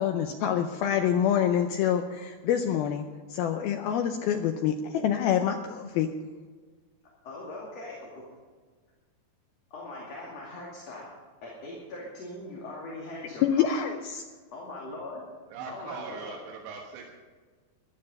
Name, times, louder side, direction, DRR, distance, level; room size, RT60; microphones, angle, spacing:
voice 1, 0.0-3.1 3.3-6.1 13.4-14.2, left 9 dB, 85° left, 6 dB, 2.2 m, -26 dB
voice 2, 7.2-8.2 9.7-11.0 11.4-13.9 14.3-15.2 15.7-16.4, left 2 dB, 45° left, -4 dB, 3.0 m, -41 dB
voice 3, 15.5-17.1, right 5 dB, 85° right, 0 dB, 3.6 m, -40 dB
15.0 x 12.0 x 5.4 m, 1.5 s
omnidirectional pair, 5.1 m